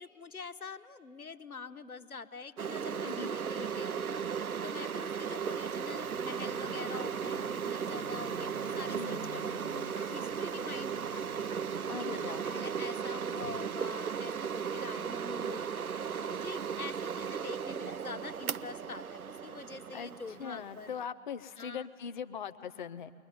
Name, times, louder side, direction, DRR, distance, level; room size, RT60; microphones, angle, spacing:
voice 1, 0.0-4.2 4.6-11.5 12.0-15.9 16.2-20.9 21.6-21.9, left 4 dB, 85° left, 10 dB, 1.0 m, -45 dB
sound 1, 2.6-21.0, right 7 dB, 90° right, 0.6 m, -36 dB
voice 2, 3.0-3.4 9.0-9.2 11.9-12.4 19.9-20.1 20.4-23.1, left 7 dB, 35° left, 10 dB, 0.5 m, -40 dB
sound 2, 5.0-19.0, left 5 dB, 60° left, 1.0 m, -55 dB
22.5 x 20.5 x 9.6 m, 2.3 s
figure-of-eight pair, 125°, 42 cm